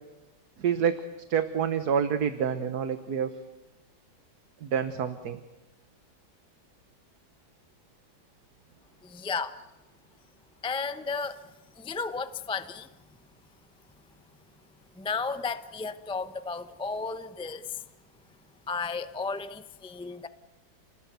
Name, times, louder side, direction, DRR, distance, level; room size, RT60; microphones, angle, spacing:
voice 1, 0.6-1.0 1.3-3.3 4.6-5.4, right 7 dB, 60° right, 9 dB, 1.6 m, -27 dB
voice 2, 9.0-9.6 10.6-12.9 14.9-17.8 18.7-20.3, left 4 dB, 10° left, 11 dB, 0.3 m, -34 dB
30.0 x 20.0 x 9.3 m, 1.1 s
omnidirectional pair, 2.0 m